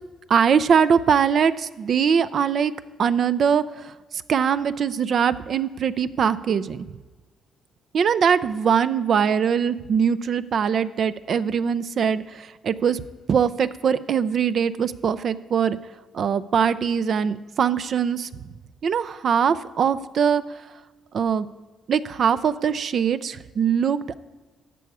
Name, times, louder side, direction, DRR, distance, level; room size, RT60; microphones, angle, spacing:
voice 1, 0.3-2.7 3.0-6.9 7.9-13.0 13.3-15.8 16.1-18.5 18.8-20.6 21.1-21.5 21.9-24.2, right 7 dB, 55° right, 13 dB, 0.4 m, -22 dB
13.5 x 8.3 x 4.8 m, 1.3 s
cardioid pair, 90°, 0 cm